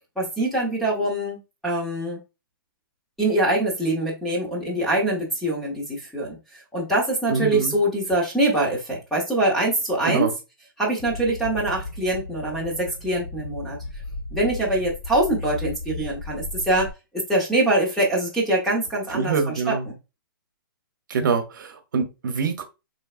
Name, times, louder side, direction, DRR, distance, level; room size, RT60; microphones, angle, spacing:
voice 1, 0.2-2.2 3.2-6.4 6.7-10.3 10.8-13.8 14.3-16.9 17.1-20.0, right 1 dB, ahead, 0.8 m, -24 dB
voice 2, 7.3-7.7 10.0-10.3 19.1-19.9 21.1-22.6, right 5 dB, 60° right, 0.9 m, -25 dB
sound 1, 11.0-16.9, left 2 dB, 35° left, 0.6 m, -35 dB
4.6 x 3.2 x 2.4 m
hypercardioid pair, 170°, 12 cm